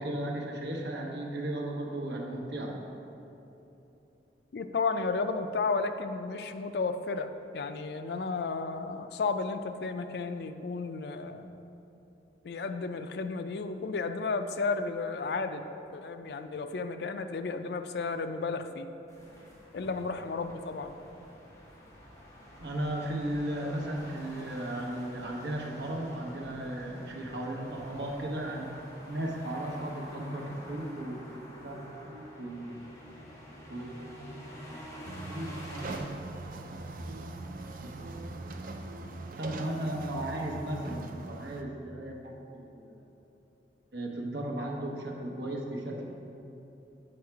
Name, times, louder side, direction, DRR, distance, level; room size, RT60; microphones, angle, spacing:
voice 1, 0.0-2.7 22.6-28.7 29.1-31.2 31.6-32.8 33.7-34.3 34.7-35.6 35.9-36.6 37.2-37.3 37.6-38.1 38.6-38.7 39.4-43.1 43.9-46.0, right 1 dB, 80° right, -1 dB, 1.1 m, -36 dB
voice 2, 4.5-11.5 12.4-18.9 19.7-21.0 23.6-23.7, left 4 dB, 70° left, 9 dB, 0.4 m, -33 dB
sound 1, 19.1-36.0, equal, 20° left, 1.4 m, -48 dB
sound 2, 35.0-41.6, right 2 dB, 50° right, 0.4 m, -41 dB
7.8 x 4.8 x 4.6 m, 3.0 s
head